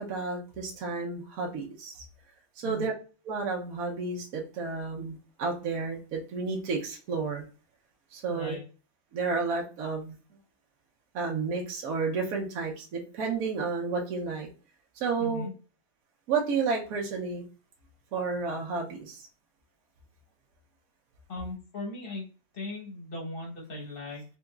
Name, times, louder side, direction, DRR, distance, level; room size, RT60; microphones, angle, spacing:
voice 1, 0.0-2.0 2.6-2.9 3.2-7.4 8.1-8.6 9.1-10.1 11.1-14.5 15.0-15.5 16.3-17.4 18.1-19.2, right 4 dB, 60° right, -1 dB, 1.0 m, -31 dB
voice 2, 8.3-8.6 15.2-15.5 21.3-22.2 22.5-24.2, left 2 dB, 35° left, -2 dB, 1.0 m, -37 dB
3.9 x 2.7 x 2.3 m, 0.35 s
omnidirectional pair, 2.0 m